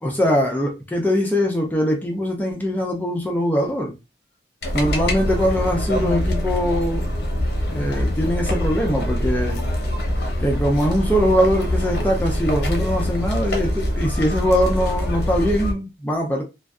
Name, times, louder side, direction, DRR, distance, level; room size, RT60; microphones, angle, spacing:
voice 1, 0.0-3.9 4.7-7.1 7.7-9.6 10.4-16.4, equal, 10° left, 0.4 m, -22 dB
sound 1, 4.6-15.7, left 1 dB, 60° left, 0.7 m, -24 dB
2.5 x 2.2 x 2.3 m
head